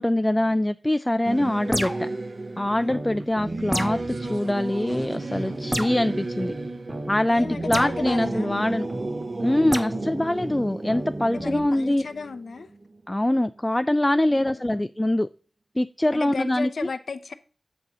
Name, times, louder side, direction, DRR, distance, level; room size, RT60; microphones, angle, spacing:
voice 1, 0.0-2.1 2.6-6.5 7.1-8.9 9.4-12.0 13.1-15.3 15.8-16.7, left 1 dB, 20° left, 0.3 m, -24 dB
Singing / Musical instrument, 1.2-13.1, right 2 dB, 60° right, 0.9 m, -34 dB
sound 1, 1.7-2.2 3.7-4.1 5.7-6.0 7.7-8.0 9.7-9.9, equal, 5° right, 0.9 m, -28 dB
sound 2, 2.6-4.4 4.9-8.4 8.9-11.6, right 1 dB, 35° right, 2.0 m, -36 dB
voice 2, 7.3-8.6 11.3-12.7 14.3-14.9 16.1-17.3, left 4 dB, 85° left, 0.5 m, -34 dB
7.6 x 4.1 x 6.1 m
cardioid pair, 50°, 0 cm